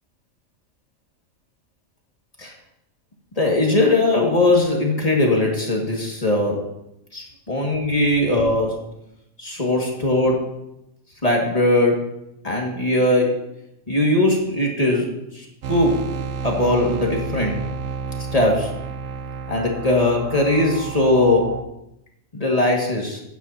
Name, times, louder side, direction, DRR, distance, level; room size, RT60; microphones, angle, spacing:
voice 1, 3.4-6.7 7.1-8.8 9.4-10.4 11.2-12.0 12.4-13.3 13.9-16.0 16.4-17.7 18.3-18.7 19.5-21.5 22.3-23.2, left 2 dB, 25° left, -1 dB, 2.0 m, -20 dB
sound 1, 15.6-21.6, right 5 dB, 60° right, 0.9 m, -30 dB
15.5 x 9.3 x 2.8 m, 0.86 s
omnidirectional pair, 1.4 m